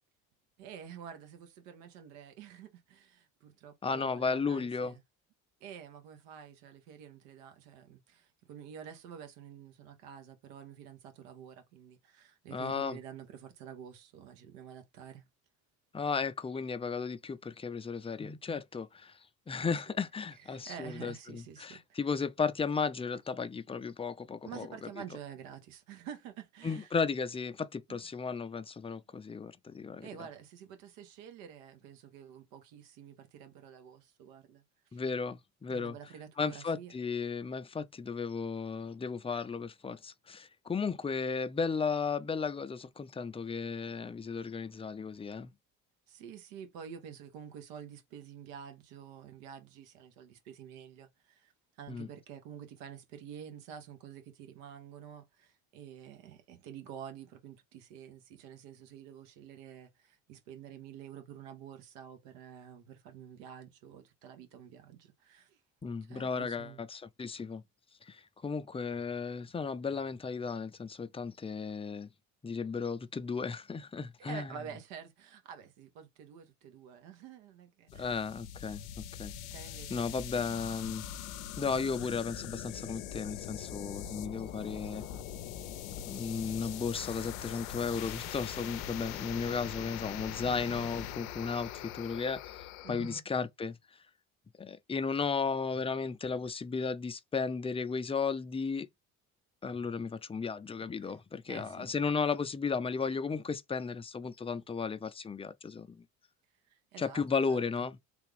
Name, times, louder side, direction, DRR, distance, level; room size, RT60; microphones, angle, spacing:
voice 1, 0.6-5.0 5.6-15.2 19.6-20.0 20.4-22.0 24.4-26.9 27.9-28.1 30.0-34.6 34.9-35.0 35.7-36.9 46.1-65.6 66.1-66.8 74.2-78.2 79.5-80.2 92.8-93.2 101.0-101.2 101.5-101.9 106.7-107.6, right 8 dB, 80° right, 1.1 m, -49 dB
voice 2, 3.8-4.9 12.5-13.0 15.9-19.2 19.5-24.9 26.6-30.1 34.9-36.0 36.4-45.5 51.9-52.1 65.8-67.6 68.0-72.1 72.4-74.6 77.9-78.8 79.2-79.3 79.9-81.0 81.6-85.0 86.1-93.8 94.6-98.9 99.6-106.0 107.0-108.0, left 5 dB, 15° left, 0.5 m, -35 dB
sound 1, 77.9-93.2, left 10 dB, 85° left, 0.6 m, -42 dB
3.4 x 2.4 x 3.2 m
hypercardioid pair, 65°, 41 cm